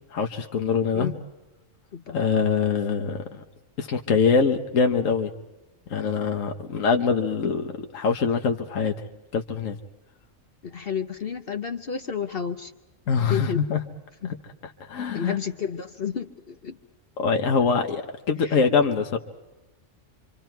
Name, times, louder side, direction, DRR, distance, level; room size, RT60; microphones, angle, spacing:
voice 1, 0.1-1.1 2.1-3.4 3.8-5.3 5.9-8.9 9.3-9.8 13.1-13.8 14.9-15.4 17.2-18.0 18.3-19.2, left 5 dB, 75° left, 4 dB, 1.5 m, -23 dB
voice 2, 10.6-12.7 13.3-13.6 14.2-14.3 15.1-16.8 17.2-17.3 18.4-18.6, left 7 dB, 50° left, 6 dB, 1.0 m, -31 dB
27.5 x 26.0 x 4.6 m, 1.0 s
omnidirectional pair, 1.4 m